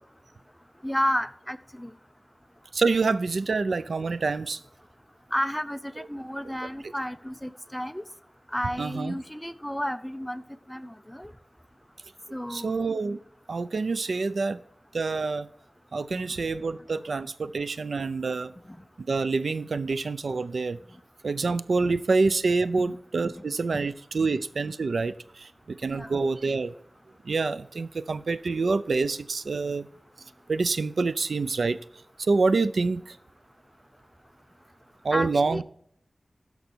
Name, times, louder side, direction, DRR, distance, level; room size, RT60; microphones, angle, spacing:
voice 1, 0.8-1.9 5.3-8.0 8.5-10.4 10.7-11.3 12.3-12.7 16.3-16.4 22.8-23.0 23.7-23.9 25.9-26.1 35.1-35.6, equal, 5° left, 13 dB, 0.5 m, -31 dB
voice 2, 2.7-4.6 8.8-9.2 12.5-13.2 13.5-14.6 14.9-15.5 15.9-18.5 19.0-20.8 21.2-26.7 27.2-29.9 30.5-31.8 32.2-33.2 35.0-35.6, right 4 dB, 80° right, 15 dB, 0.5 m, -27 dB
13.0 x 5.3 x 4.5 m, 0.64 s
wide cardioid pair, 80°, 0 cm